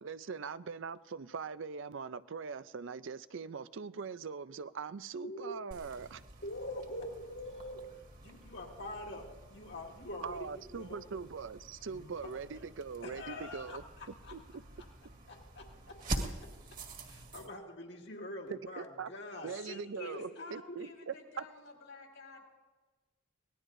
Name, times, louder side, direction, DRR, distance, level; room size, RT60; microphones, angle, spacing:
voice 1, 0.0-6.2 10.2-13.8 14.3-14.6 18.5-19.1 19.4-21.4, right 5 dB, 70° right, 0.5 m, -42 dB
voice 2, 5.2-5.7 6.4-7.8 8.2-10.5 10.8-11.0 11.9-12.1 13.0-14.3 15.3-15.6 17.0-19.5 20.0-20.2, left 1 dB, 55° left, 2.2 m, -44 dB
sound 1, 5.7-17.5, right 1 dB, 40° right, 1.9 m, -46 dB
voice 3, 19.5-22.5, left 2 dB, 70° left, 4.3 m, -50 dB
24.0 x 19.0 x 2.6 m
head